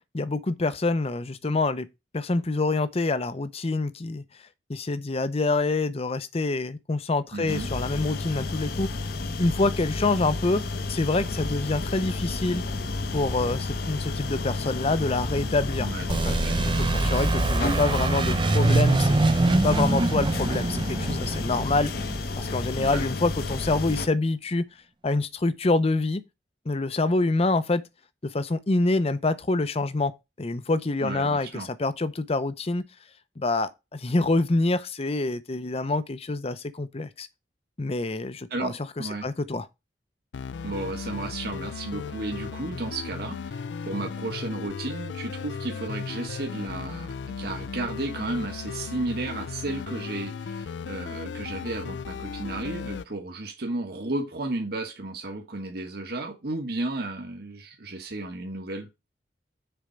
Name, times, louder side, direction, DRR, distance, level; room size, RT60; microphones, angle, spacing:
voice 1, 0.1-1.9 2.1-4.2 4.7-8.9 9.4-10.6 10.9-12.6 13.1-16.4 16.6-19.2 19.6-21.9 22.4-24.7 25.0-26.2 26.7-27.8 28.3-30.1 30.4-32.8 33.4-37.3 37.8-39.6, left 2 dB, 35° left, 0.6 m, -26 dB
voice 2, 7.3-7.7 15.8-16.1 16.4-16.7 22.8-23.0 31.0-31.7 38.5-39.3 40.6-58.9, right 2 dB, 60° right, 1.4 m, -33 dB
sound 1, 7.5-24.1, left 3 dB, 60° left, 0.9 m, -31 dB
sound 2, 16.1-22.7, right 2 dB, 30° right, 0.5 m, -24 dB
sound 3, 40.3-53.0, left 5 dB, 85° left, 0.4 m, -36 dB
6.9 x 4.4 x 5.1 m
head